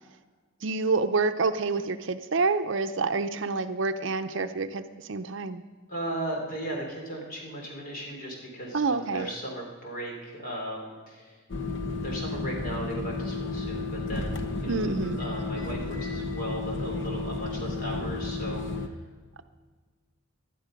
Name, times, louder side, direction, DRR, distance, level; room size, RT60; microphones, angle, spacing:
voice 1, 0.6-4.8 5.1-5.6 8.7-9.3 14.7-15.2, right 4 dB, 60° right, 9 dB, 0.6 m, -27 dB
voice 2, 5.9-11.4 11.9-19.0, right 1 dB, 45° left, 0 dB, 3.5 m, -37 dB
sound 1, 11.5-18.9, left 3 dB, 60° left, 1.0 m, -32 dB
19.0 x 11.5 x 5.2 m, 1.5 s
head